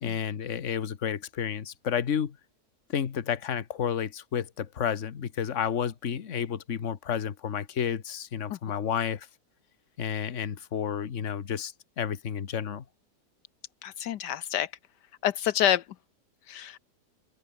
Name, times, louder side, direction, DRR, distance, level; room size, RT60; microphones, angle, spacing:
voice 1, 0.0-2.4 2.9-9.3 10.0-12.8, left 8 dB, 50° left, 1.5 m, -31 dB
voice 2, 13.8-14.7 15.2-15.8 16.5-16.8, left 11 dB, 80° left, 1.4 m, -27 dB
omnidirectional pair, 1.8 m